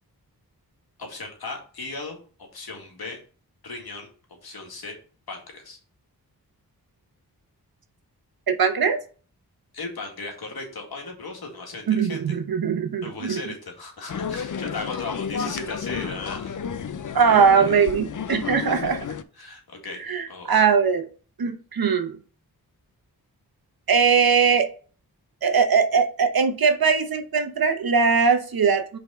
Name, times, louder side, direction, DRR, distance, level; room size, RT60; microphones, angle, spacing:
voice 1, 1.0-3.2 3.6-4.1 4.4-5.0 5.3-5.8 9.7-12.3 13.0-16.6 17.6-17.8 18.7-18.8 19.4-20.6, left 3 dB, 75° left, 1 dB, 2.1 m, -37 dB
voice 2, 8.5-9.0 11.9-13.4 17.1-19.0 20.0-21.1 21.4-22.2 23.9-24.7 25.4-29.0, right 6 dB, 70° right, 8 dB, 1.0 m, -20 dB
sound 1, 14.1-19.2, left 7 dB, 55° left, 0.6 m, -32 dB
5.4 x 4.1 x 5.0 m, 0.39 s
wide cardioid pair, 75°, 37 cm